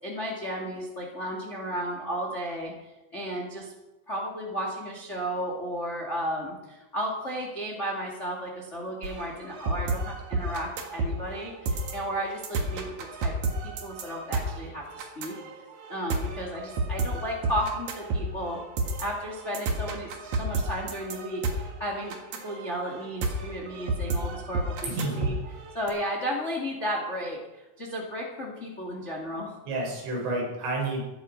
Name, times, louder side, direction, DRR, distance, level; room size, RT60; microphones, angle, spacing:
voice 1, 0.0-3.7 4.1-13.3 13.6-15.3 15.9-18.6 19.0-22.1 22.4-25.3 25.7-29.6, equal, 80° left, 0 dB, 0.6 m, -34 dB
sound 1, 9.0-25.9, right 3 dB, 55° right, 2.2 m, -31 dB
voice 2, 24.8-25.4 29.7-31.0, right 2 dB, 80° right, -2 dB, 6.9 m, -30 dB
16.0 x 11.5 x 5.2 m, 1.1 s
omnidirectional pair, 5.4 m